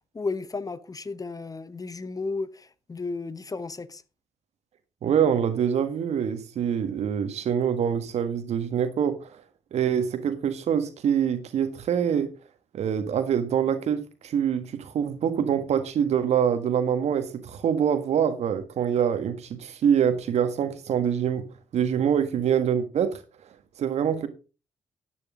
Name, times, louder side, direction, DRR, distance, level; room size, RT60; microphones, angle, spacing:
voice 1, 0.1-4.0, left 3 dB, 30° left, 1.0 m, -33 dB
voice 2, 5.0-9.4 9.7-12.3 12.7-21.4 21.7-23.2 23.8-24.3, right 8 dB, 65° right, 1.7 m, -25 dB
12.0 x 9.6 x 3.8 m
hypercardioid pair, 45°, 12 cm